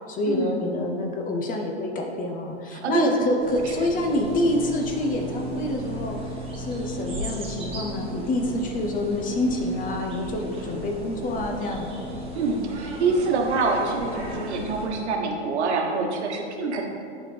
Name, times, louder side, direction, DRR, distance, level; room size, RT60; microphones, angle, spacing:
voice 1, 0.1-6.2 6.6-11.9, left 1 dB, 25° left, 3 dB, 0.7 m, -27 dB
voice 2, 2.7-3.1 12.3-16.8, right 4 dB, 70° right, 2 dB, 1.2 m, -25 dB
sound 1, 3.4-14.9, equal, 15° right, 1.5 m, -35 dB
11.0 x 4.3 x 3.3 m, 2.5 s
hypercardioid pair, 115°, 35 cm